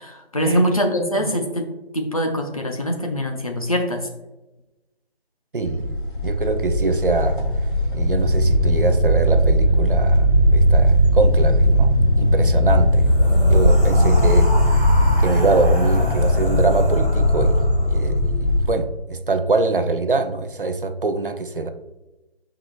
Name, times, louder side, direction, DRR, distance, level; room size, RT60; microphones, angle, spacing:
voice 1, 0.0-4.0, equal, 35° left, 2 dB, 0.7 m, -23 dB
voice 2, 1.0-1.5 5.5-7.4 7.9-14.9 15.2-18.3 18.7-21.7, right 3 dB, 55° right, 8 dB, 0.6 m, -24 dB
sound 1, 5.6-18.7, equal, 50° left, 1.8 m, -18 dB
sound 2, 12.9-18.2, equal, 10° left, 0.9 m, -30 dB
8.7 x 4.9 x 2.3 m, 1.0 s
figure-of-eight pair, 160°, 32 cm